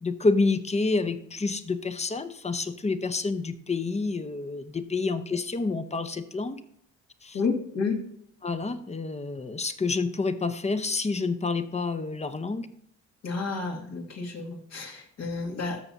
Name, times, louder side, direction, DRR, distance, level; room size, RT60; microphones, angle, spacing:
voice 1, 0.0-6.6 7.2-7.4 8.4-12.7, left 3 dB, 20° left, 10 dB, 0.9 m, -28 dB
voice 2, 7.3-8.0 13.2-15.8, left 4 dB, 60° left, 1 dB, 2.2 m, -30 dB
13.0 x 7.0 x 2.7 m, 0.71 s
cardioid pair, 90°, 30 cm